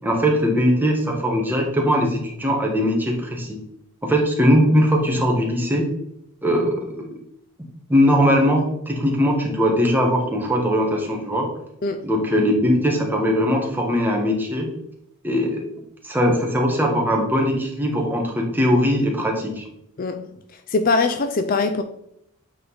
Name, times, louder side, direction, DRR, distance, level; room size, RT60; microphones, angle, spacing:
voice 1, 0.0-3.6 4.0-5.9 6.4-7.2 7.9-11.5 12.0-14.7 15.2-15.6 16.0-19.7, equal, 10° right, 1.2 m, -20 dB
voice 2, 20.7-21.8, left 3 dB, 40° left, 0.4 m, -21 dB
8.5 x 3.8 x 3.9 m
head